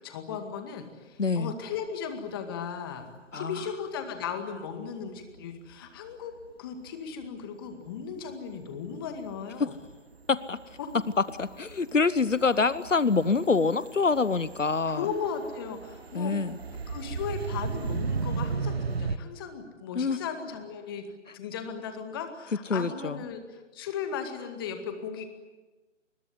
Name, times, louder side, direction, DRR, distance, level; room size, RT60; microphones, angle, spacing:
voice 1, 0.0-3.1 3.3-6.3 6.6-9.8 10.8-10.9 13.5-13.7 14.9-16.3 16.7-21.1 21.3-25.3, left 6 dB, 20° left, 7 dB, 2.1 m, -36 dB
voice 2, 1.2-1.5 3.3-3.6 9.6-9.7 10.3-10.6 11.4-15.1 16.1-16.6 19.9-20.2 22.7-23.2, left 4 dB, 75° left, 16 dB, 1.1 m, -26 dB
sound 1, 3.0-3.1 5.2-6.5 6.9-7.5 7.7-19.2, right 5 dB, 55° right, 1.3 m, -36 dB
26.0 x 21.5 x 9.5 m, 1.2 s
figure-of-eight pair, 150°, 37 cm